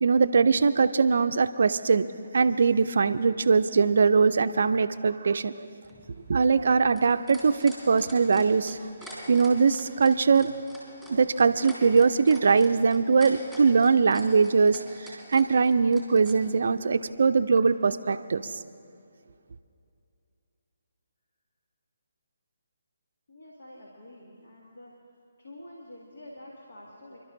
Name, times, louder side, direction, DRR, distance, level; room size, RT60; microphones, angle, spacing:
voice 1, 0.0-2.1 2.3-5.7 6.3-8.8 9.3-10.5 11.1-14.8 15.1-18.5, right 5 dB, 65° right, 10 dB, 0.4 m, -22 dB
sound 1, 5.8-16.4 17.6-17.7, equal, 5° left, 3.8 m, -46 dB
voice 2, 23.3-24.9 25.4-27.2, left 1 dB, 70° left, -3 dB, 2.1 m, -47 dB
29.0 x 12.0 x 2.7 m, 2.5 s
figure-of-eight pair, 145°, 0 cm